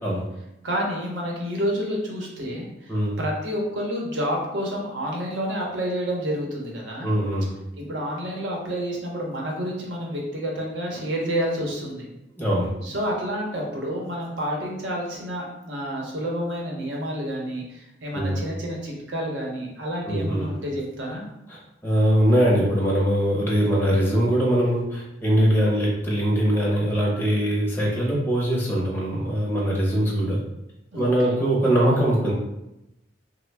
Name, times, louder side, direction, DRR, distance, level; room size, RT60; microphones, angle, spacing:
voice 1, 0.6-7.1 7.8-12.0 12.8-21.2 30.9-31.4, equal, 75° right, -2 dB, 0.8 m, -29 dB
voice 2, 7.0-7.5 12.4-12.7 18.1-18.4 20.1-20.5 21.5-30.4 30.9-32.3, equal, 10° left, -5 dB, 0.6 m, -22 dB
3.1 x 2.1 x 3.2 m, 0.90 s
head